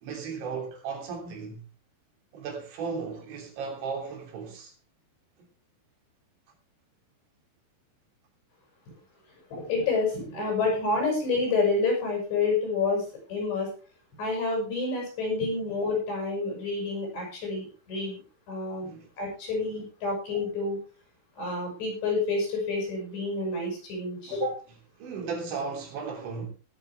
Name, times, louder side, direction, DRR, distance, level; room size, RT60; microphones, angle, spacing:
voice 1, 0.0-1.6 2.3-4.7 18.8-19.1 24.3-24.5 25.0-26.5, right 5 dB, 75° right, 5.5 m, -35 dB
voice 2, 9.5-13.7 14.2-18.2 18.5-18.9 19.2-20.8 21.4-24.5, left 3 dB, 65° left, 8.5 m, -28 dB
20.0 x 9.0 x 3.5 m
omnidirectional pair, 5.4 m